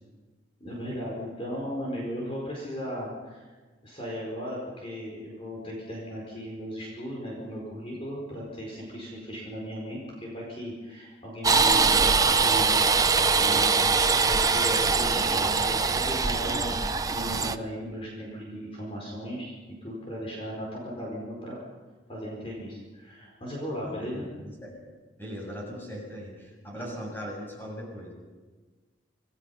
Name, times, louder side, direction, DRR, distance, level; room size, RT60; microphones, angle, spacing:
voice 1, 0.6-3.5 3.8-12.7 13.3-21.6 22.1-24.3 26.8-26.9, equal, 30° left, -3 dB, 4.7 m, -36 dB
sound 1, 11.4-17.6, right 4 dB, 20° right, 0.7 m, -23 dB
voice 2, 13.0-13.6 23.8-24.3 24.6-24.7 25.2-28.1, equal, 10° left, -1 dB, 6.9 m, -39 dB
27.0 x 19.0 x 5.7 m, 1.3 s
head